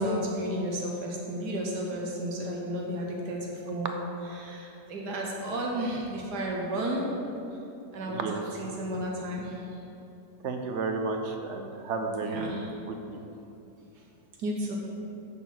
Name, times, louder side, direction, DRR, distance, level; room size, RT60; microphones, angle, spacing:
voice 1, 0.0-4.0 4.3-7.2 7.9-8.2 8.6-9.6 12.2-12.7 14.4-14.8, right 1 dB, 80° right, -1 dB, 1.5 m, -32 dB
voice 2, 8.1-8.4 10.4-12.6 12.9-13.2, right 4 dB, 55° right, 4 dB, 0.9 m, -32 dB
7.1 x 6.6 x 5.8 m, 2.8 s
omnidirectional pair, 1.7 m